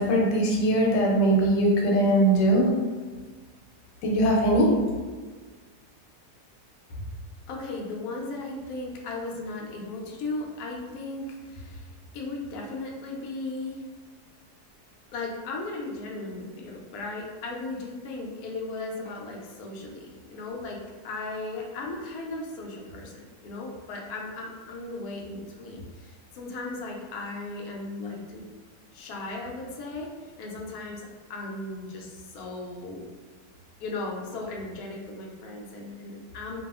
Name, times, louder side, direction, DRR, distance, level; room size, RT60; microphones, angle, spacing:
voice 1, 0.0-2.7 4.0-4.7, right 1 dB, 85° left, -1 dB, 1.2 m, -21 dB
voice 2, 7.5-11.9 12.1-13.8 15.1-28.4 28.9-30.1 30.4-33.1 33.8-36.6, left 2 dB, 70° left, -1 dB, 0.9 m, -36 dB
2.6 x 2.3 x 2.3 m, 1.4 s
omnidirectional pair, 1.8 m